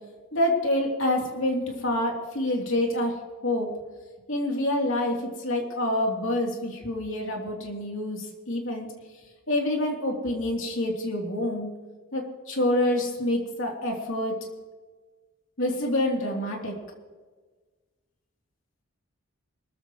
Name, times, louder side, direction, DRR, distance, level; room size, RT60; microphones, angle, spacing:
voice 1, 0.3-3.7 4.3-8.9 9.5-11.7 12.1-14.3 15.6-16.7, left 1 dB, 65° left, 0 dB, 3.1 m, -27 dB
23.0 x 14.0 x 3.1 m, 1.4 s
head